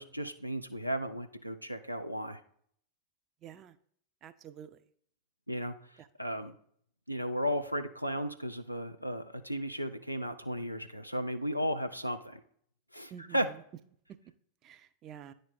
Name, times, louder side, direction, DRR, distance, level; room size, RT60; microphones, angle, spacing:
voice 1, 0.0-2.4 5.5-5.7 6.2-6.6 7.1-12.4 12.9-13.5, equal, 90° right, 7 dB, 0.4 m, -34 dB
voice 2, 3.4-3.8 4.2-4.8 6.0-6.1 13.1-13.6 14.6-15.3, right 9 dB, 30° right, 11 dB, 0.4 m, -49 dB
9.8 x 3.3 x 3.9 m, 0.63 s
figure-of-eight pair, 90°, 0 cm